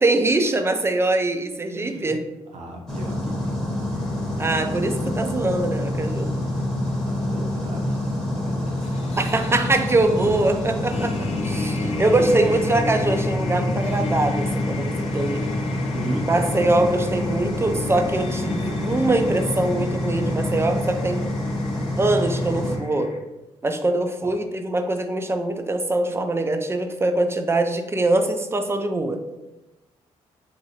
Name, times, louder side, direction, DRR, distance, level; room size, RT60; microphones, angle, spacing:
voice 1, 0.0-2.2 4.4-6.3 9.2-15.4 16.2-21.2 22.0-23.1 23.6-29.2, right 2 dB, 20° right, 6 dB, 0.4 m, -23 dB
voice 2, 1.7-2.2 2.5-4.4 6.7-8.9 10.1-10.4 10.6-10.7 11.8-12.0 12.2-12.7 15.9-16.3 18.4-18.6 24.2-24.4, right 2 dB, 55° right, 0 dB, 0.7 m, -36 dB
sound 1, 2.9-22.8, left 1 dB, 5° left, 0.8 m, -27 dB
sound 2, 3.9-23.2, left 3 dB, 50° left, 0.5 m, -35 dB
3.0 x 2.7 x 2.8 m, 1.0 s
supercardioid pair, 65°, 13 cm